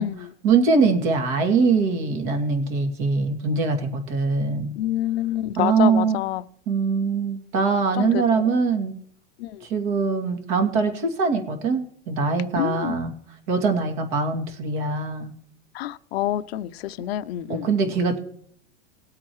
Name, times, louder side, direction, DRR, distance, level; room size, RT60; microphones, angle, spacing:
voice 1, 0.0-4.7 5.5-6.2 6.7-8.9 9.6-13.1 13.5-15.3 17.5-18.2, right 4 dB, 45° right, 2.6 m, -22 dB
voice 2, 4.8-6.4 8.0-8.2 9.4-9.6 12.6-13.0 15.7-17.7, left 13 dB, 65° left, 0.6 m, -27 dB
19.5 x 8.4 x 3.1 m
supercardioid pair, 155°, 34 cm